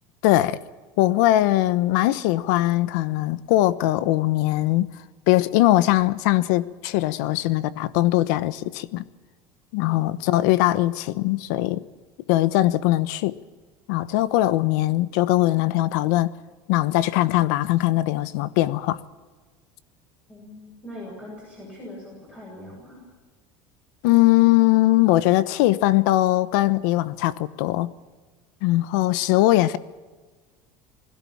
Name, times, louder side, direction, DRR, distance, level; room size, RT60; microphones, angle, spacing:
voice 1, 0.2-0.6 1.0-4.9 5.3-9.0 9.7-11.8 12.3-13.4 13.9-16.3 16.7-19.0 24.0-27.9 28.6-29.8, left 16 dB, 75° left, 1.0 m, -20 dB
voice 2, 20.3-23.0, left 1 dB, 15° left, 7.7 m, -41 dB
21.5 x 16.5 x 8.6 m
cardioid pair, 170°, 10 cm